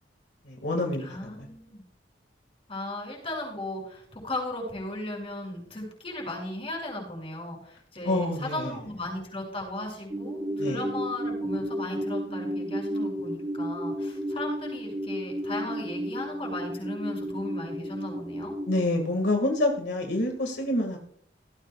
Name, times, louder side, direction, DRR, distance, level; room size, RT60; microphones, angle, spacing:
voice 1, 0.5-1.5 8.0-8.8 10.6-10.8 18.7-21.0, left 1 dB, 70° left, 3 dB, 1.9 m, -27 dB
voice 2, 1.0-1.8 2.7-18.5, left 1 dB, 30° left, -1 dB, 6.2 m, -36 dB
sound 1, 10.1-18.9, equal, 15° right, 0.6 m, -32 dB
17.0 x 15.5 x 2.3 m, 0.63 s
head